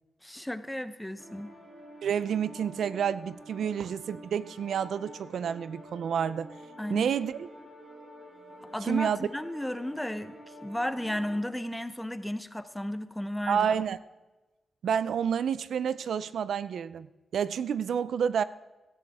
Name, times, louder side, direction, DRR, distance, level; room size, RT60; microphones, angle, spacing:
voice 1, 0.2-1.6 3.6-3.7 6.8-7.1 8.6-13.7, left 1 dB, 5° left, 11 dB, 0.8 m, -34 dB
sound 1, 1.2-11.4, equal, 50° right, 5.3 m, -48 dB
voice 2, 2.0-6.5 6.9-7.5 8.8-9.2 13.5-14.0 14.8-17.1 17.3-18.4, right 8 dB, 80° right, 16 dB, 0.5 m, -29 dB
17.0 x 13.5 x 3.6 m, 1.1 s
wide cardioid pair, 115°, 0 cm